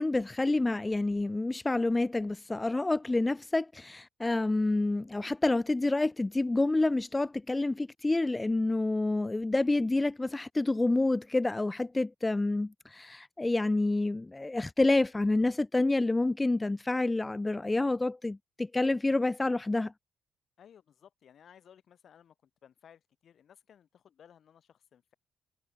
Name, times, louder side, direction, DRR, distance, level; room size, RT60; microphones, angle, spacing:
voice 1, 0.0-19.9, left 2 dB, 15° left, 0.6 m, -28 dB
voice 2, 20.6-25.1, left 8 dB, 60° left, 4.9 m, -58 dB
cardioid pair, 90°, 0 cm